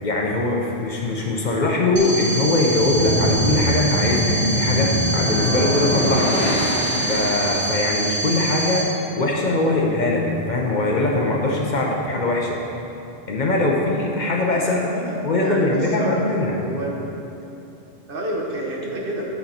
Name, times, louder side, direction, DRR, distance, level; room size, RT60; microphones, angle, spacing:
voice 1, 0.0-6.4 7.1-8.9 9.2-12.6 13.3-16.6, left 2 dB, 50° left, -1 dB, 0.8 m, -21 dB
sound 1, 2.0-8.8, right 1 dB, 75° right, 1.5 m, -26 dB
sound 2, 2.5-7.9, left 1 dB, 35° left, 1.2 m, -24 dB
voice 2, 14.6-16.2 16.6-16.9 18.1-19.3, right 1 dB, 60° right, -2 dB, 1.2 m, -29 dB
7.0 x 6.4 x 4.2 m, 3.0 s
omnidirectional pair, 1.1 m